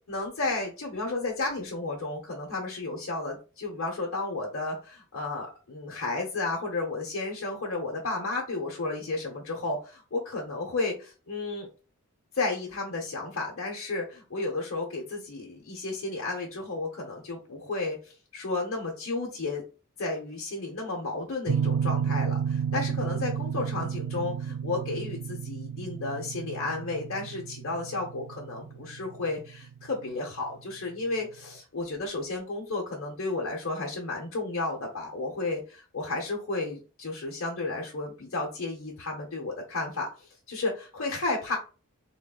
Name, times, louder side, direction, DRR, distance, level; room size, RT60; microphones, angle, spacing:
voice 1, 0.1-11.7 12.3-19.6 20.0-41.6, left 3 dB, 65° left, -2 dB, 0.9 m, -33 dB
sound 1, 21.5-30.2, right 7 dB, 80° right, 0.4 m, -32 dB
3.8 x 3.7 x 2.4 m, 0.34 s
head